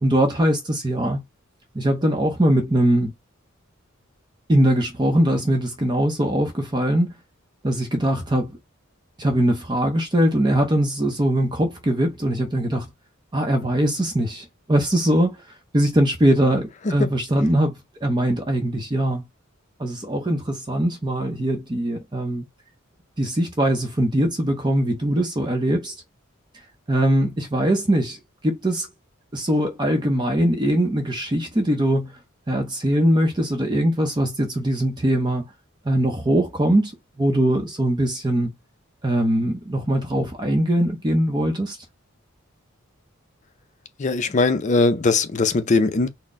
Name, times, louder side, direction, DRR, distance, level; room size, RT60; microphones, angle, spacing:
voice 1, 0.0-1.2 1.7-3.1 4.5-7.1 7.6-8.6 9.2-12.9 13.3-15.4 15.7-19.2 19.8-22.4 23.2-25.9 26.9-28.9 29.3-32.2 32.5-35.4 35.8-36.9 37.2-38.5 39.0-41.8, right 1 dB, 20° right, 0.7 m, -21 dB
voice 2, 44.0-46.1, left 3 dB, 35° left, 0.5 m, -20 dB
4.2 x 2.1 x 3.6 m
head